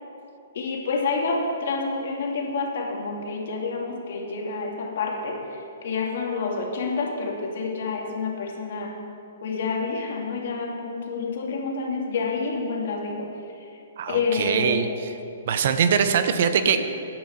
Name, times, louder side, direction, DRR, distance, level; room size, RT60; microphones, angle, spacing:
voice 1, 0.5-9.0 9.4-13.3 13.6-13.7 14.1-14.9 16.7-16.8, left 4 dB, 65° left, 0 dB, 2.3 m, -28 dB
voice 2, 14.0-14.9 15.5-16.8, right 7 dB, 55° right, 9 dB, 0.9 m, -22 dB
15.0 x 10.0 x 4.4 m, 2.7 s
hypercardioid pair, 145°, 0 cm